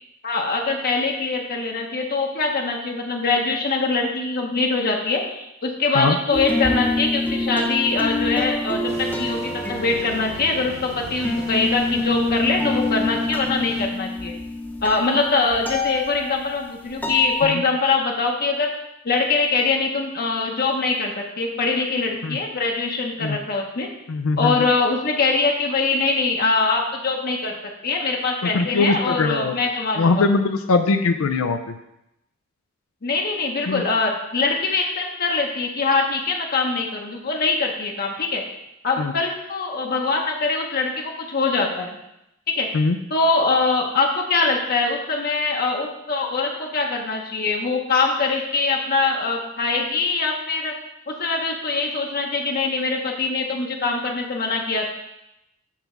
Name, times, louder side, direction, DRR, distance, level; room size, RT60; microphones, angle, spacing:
voice 1, 0.2-14.3 14.8-18.7 19.0-23.9 24.4-27.6 27.8-30.3 33.0-38.4 38.8-41.9 42.5-42.7 43.1-50.7 51.1-54.9, left 3 dB, 45° left, 1 dB, 0.8 m, -23 dB
sound 1, 6.3-17.5, left 2 dB, 10° left, 0.7 m, -27 dB
sound 2, 8.9-13.9, right 1 dB, 35° right, 1.1 m, -39 dB
voice 2, 24.1-24.7 28.5-29.5 30.0-31.6 33.7-33.8 39.0-39.1 42.7-43.0, left 3 dB, 85° left, 7 dB, 0.5 m, -21 dB
7.5 x 3.4 x 6.0 m, 0.86 s
head